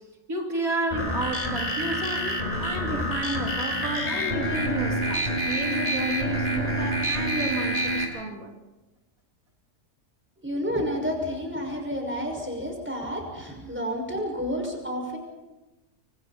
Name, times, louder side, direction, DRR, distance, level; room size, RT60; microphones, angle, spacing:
voice 1, 0.3-8.5, right 2 dB, 90° right, 1 dB, 3.5 m, -32 dB
sound 1, 0.9-8.0, right 1 dB, 30° left, 4.7 m, -27 dB
voice 2, 10.4-15.2, equal, 10° right, 1 dB, 5.9 m, -30 dB
30.0 x 25.0 x 4.3 m, 1.1 s
omnidirectional pair, 1.4 m